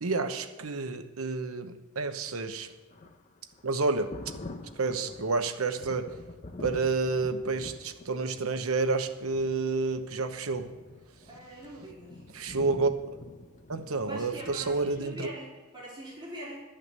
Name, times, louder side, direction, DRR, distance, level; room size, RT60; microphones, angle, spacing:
voice 1, 0.0-2.7 3.6-4.1 4.8-6.1 6.6-10.7 12.3-13.2 13.7-15.3, right 3 dB, 90° right, 8 dB, 1.0 m, -30 dB
Thunder, 2.2-15.0, left 2 dB, 35° left, 0.9 m, -47 dB
voice 2, 11.3-12.2 14.0-16.6, right 1 dB, 25° right, -7 dB, 4.2 m, -42 dB
12.5 x 5.7 x 8.1 m, 1.3 s
head